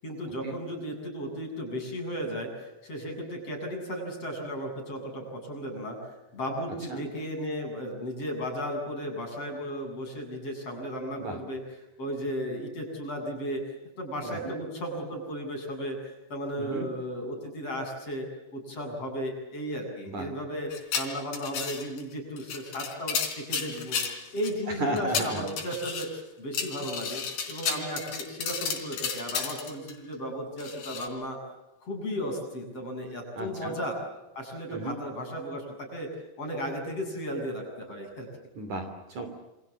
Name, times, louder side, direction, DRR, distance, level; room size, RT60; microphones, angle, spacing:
voice 1, 0.0-11.6 12.0-13.6 14.0-20.7 20.9-24.0 24.3-27.2 27.5-31.4 31.8-34.0 34.3-36.1 36.4-38.3, equal, 35° left, 3 dB, 8.6 m, -35 dB
sound 1, 20.7-22.0 22.4-24.5 25.0-26.1 26.5-29.9 30.6-31.1, left 6 dB, 70° left, 5.7 m, -33 dB
voice 2, 24.8-25.4 33.4-33.7 34.7-35.0 38.6-39.3, right 2 dB, 45° right, 7 dB, 4.2 m, -34 dB
29.0 x 27.0 x 7.3 m, 0.99 s
omnidirectional pair, 5.0 m